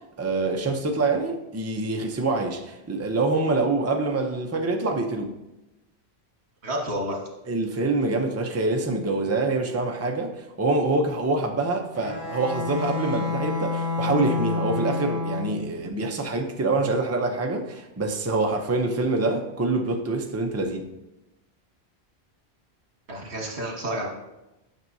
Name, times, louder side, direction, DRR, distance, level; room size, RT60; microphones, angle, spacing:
voice 1, 0.2-5.3 7.5-20.9, right 3 dB, 20° right, 0.5 m, -25 dB
voice 2, 6.6-7.2 23.1-24.1, right 1 dB, 80° right, 1.8 m, -30 dB
Bowed string instrument, 11.9-15.8, left 3 dB, 75° left, 3.3 m, -28 dB
9.1 x 5.9 x 2.7 m
omnidirectional pair, 1.1 m